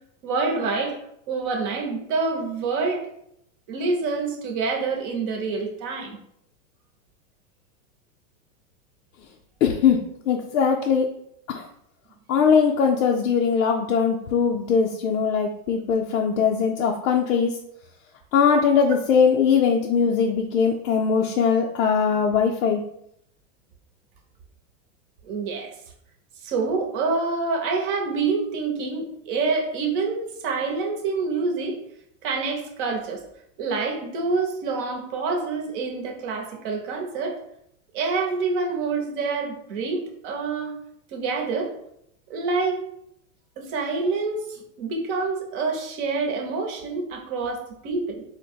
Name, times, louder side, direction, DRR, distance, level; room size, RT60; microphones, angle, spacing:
voice 1, 0.2-1.0 1.3-3.0 3.7-6.2 25.2-25.7 26.4-31.8 32.2-33.2 33.6-37.4 37.9-40.7 41.1-41.7 42.3-42.8 43.6-48.2, right 4 dB, 40° right, 2 dB, 0.8 m, -27 dB
voice 2, 9.6-11.1 11.5-11.7 12.3-17.6 18.3-22.8, left 6 dB, 85° left, 1 dB, 0.6 m, -21 dB
4.3 x 2.1 x 4.4 m, 0.74 s
supercardioid pair, 155°, 40 cm